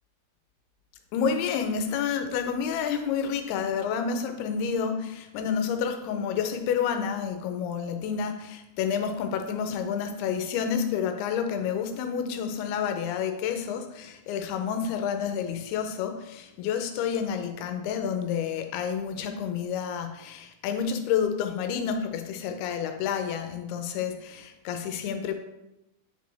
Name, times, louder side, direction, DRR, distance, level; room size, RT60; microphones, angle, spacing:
voice 1, 1.1-25.3, left 7 dB, 90° left, 7 dB, 2.7 m, -29 dB
9.6 x 5.1 x 3.4 m, 0.92 s
omnidirectional pair, 4.4 m